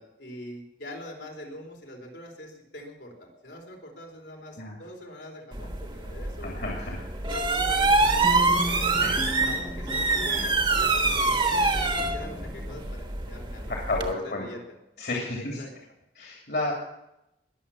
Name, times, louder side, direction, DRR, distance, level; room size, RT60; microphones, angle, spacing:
voice 1, 0.0-6.5 7.3-9.1 9.4-11.5 11.7-14.6 15.4-15.7, left 1 dB, 85° left, 1 dB, 3.9 m, -43 dB
sound 1, 5.5-14.1, right 3 dB, 30° right, 1.2 m, -25 dB
voice 2, 6.4-7.1 9.0-9.1 13.7-14.4 15.0-15.6 16.1-16.7, left 2 dB, 65° left, -1 dB, 3.0 m, -31 dB
sound 2, 7.9-12.9, left 1 dB, 10° left, 0.4 m, -37 dB
21.0 x 7.2 x 7.2 m, 0.87 s
head